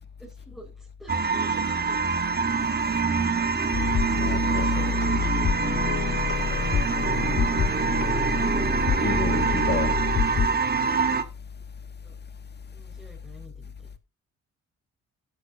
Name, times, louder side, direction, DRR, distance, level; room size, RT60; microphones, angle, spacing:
voice 1, 0.2-2.0 4.4-5.7 12.0-12.1 12.7-13.7, right 1 dB, ahead, 4.7 m, -47 dB
sound 1, 1.1-11.2, right 5 dB, 30° right, 1.8 m, -25 dB
sound 2, 3.7-10.5, left 7 dB, 70° left, 4.4 m, -27 dB
voice 2, 4.2-4.9 9.0-9.9, left 5 dB, 35° left, 1.8 m, -31 dB
12.5 x 12.5 x 2.6 m
cardioid pair, 90°, 30 cm